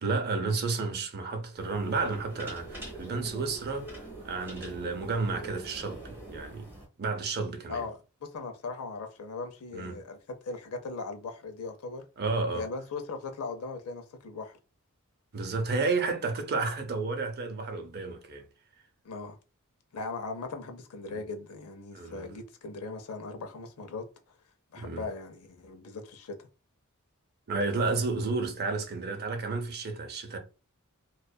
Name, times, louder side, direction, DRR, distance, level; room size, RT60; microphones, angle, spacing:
voice 1, 0.0-6.7 7.0-7.8 9.7-10.0 12.2-12.6 15.3-18.5 21.1-21.2 21.9-22.3 24.8-25.1 27.5-30.4, right 3 dB, 45° right, 0.6 m, -31 dB
sound 1, 1.6-6.8, right 2 dB, 10° right, 1.1 m, -44 dB
voice 2, 7.7-10.2 10.4-12.1 12.5-14.6 19.0-19.4 19.9-24.0 24.7-26.4, left 3 dB, 70° left, 0.5 m, -39 dB
2.5 x 2.3 x 2.2 m
head